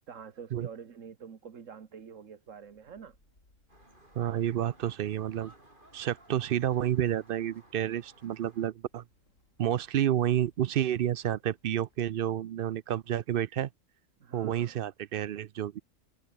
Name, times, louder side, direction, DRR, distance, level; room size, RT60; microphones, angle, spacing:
voice 1, 0.1-3.2 14.2-14.8, right 6 dB, 80° right, 1.8 m, -47 dB
sound 1, 2.4-13.2, left 1 dB, 85° left, 8.4 m, -69 dB
sound 2, 3.7-8.7, right 1 dB, 40° right, 6.3 m, -58 dB
voice 2, 4.2-5.5 5.9-9.0 9.6-13.7 14.3-15.8, right 11 dB, 60° right, 0.6 m, -30 dB
omnidirectional pair, 1.3 m